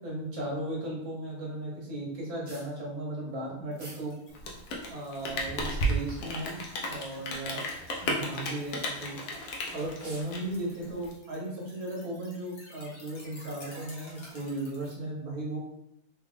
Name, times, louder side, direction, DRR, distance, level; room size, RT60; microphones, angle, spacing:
voice 1, 0.0-4.1 4.9-6.6 6.9-7.6 8.0-9.2 9.7-15.6, right 1 dB, 65° right, -3 dB, 1.5 m, -36 dB
sound 1, 2.4-2.7 3.7-4.0 4.6-4.7 5.5-6.1 6.8-7.1 7.4-7.5 8.2-8.4 9.4-9.5 9.8-10.4, right 1 dB, 25° right, 0.8 m, -49 dB
sound 2, 3.7-14.9, left 1 dB, 90° left, 1.7 m, -53 dB
Rain, 4.3-11.1, equal, 70° left, 1.2 m, -33 dB
3.9 x 2.4 x 3.4 m, 0.82 s
omnidirectional pair, 1.7 m